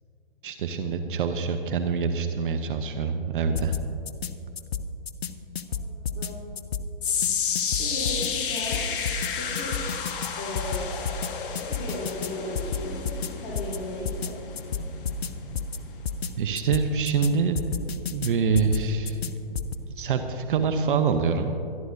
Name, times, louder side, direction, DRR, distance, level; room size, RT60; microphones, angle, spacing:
voice 1, 0.4-3.7 16.4-17.5 18.1-19.3 20.0-21.6, right 5 dB, 55° right, 8 dB, 0.9 m, -25 dB
sound 1, 3.6-4.3 4.6-5.3 5.6-6.3 6.6-7.3 7.6-8.3 8.6-9.3 9.6-10.3 10.6-11.3 11.6-12.3 12.6-13.3 13.6-13.8 14.1-14.3 14.6-15.3 15.6-15.8 16.1-16.3 16.6-17.3 17.6-18.3 18.6-19.3 19.6-19.8, left 6 dB, 75° left, 0.8 m, -30 dB
voice 2, 5.7-6.4 7.8-8.8 9.4-9.7 10.4-10.9 11.5-13.1 13.4-14.3, left 2 dB, 30° left, -6 dB, 3.2 m, -36 dB
sound 2, 7.0-19.3 19.6-20.0 20.6-20.7, left 7 dB, 55° left, 1.6 m, -32 dB
25.0 x 11.0 x 2.7 m, 2.6 s
hypercardioid pair, 130°, 31 cm